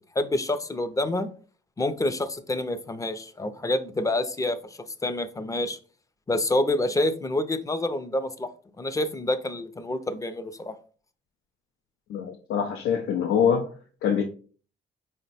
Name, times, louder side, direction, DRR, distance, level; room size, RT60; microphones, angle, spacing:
voice 1, 0.2-1.3 1.8-5.8 6.3-8.5 8.8-10.7, left 1 dB, 15° left, 0.4 m, -27 dB
voice 2, 12.1-13.7 14.0-14.2, left 7 dB, 90° left, 0.5 m, -24 dB
4.7 x 2.1 x 4.0 m
cardioid pair, 90°, 20 cm